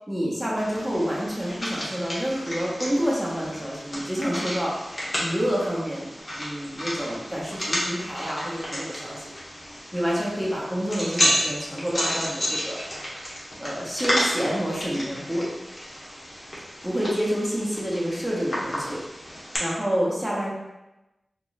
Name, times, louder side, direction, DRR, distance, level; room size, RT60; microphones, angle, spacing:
voice 1, 0.1-4.7 5.2-6.1 6.4-9.3 9.9-12.8 13.6-15.5 16.8-19.0 19.6-20.5, equal, 5° right, -5 dB, 0.8 m, -28 dB
sound 1, 0.6-19.6, equal, 40° left, 1.1 m, -32 dB
3.0 x 2.3 x 3.9 m, 1.0 s
wide cardioid pair, 90°, 0 cm